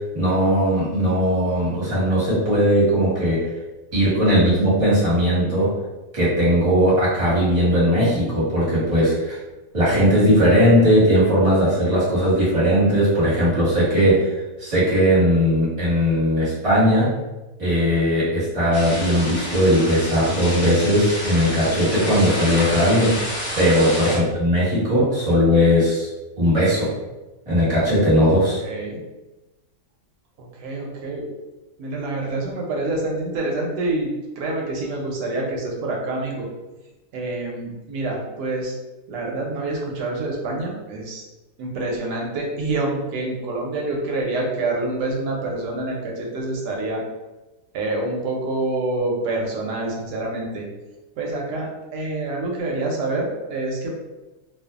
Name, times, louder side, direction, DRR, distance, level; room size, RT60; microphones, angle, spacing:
voice 1, 0.1-3.4 3.9-5.7 6.1-9.4 9.7-14.3 14.6-17.1 17.6-26.1 26.4-26.9 27.5-28.6, equal, 25° right, -9 dB, 1.0 m, -18 dB
sound 1, 18.7-24.2, equal, 30° left, 0.6 m, -29 dB
voice 2, 23.9-24.4 28.6-29.0 30.4-31.3 31.8-34.1 34.4-36.5 37.1-38.7 39.1-41.2 41.6-47.0 47.7-50.7 51.1-54.0, right 2 dB, 75° right, -1 dB, 1.2 m, -27 dB
2.6 x 2.5 x 2.3 m, 1.1 s
omnidirectional pair, 1.9 m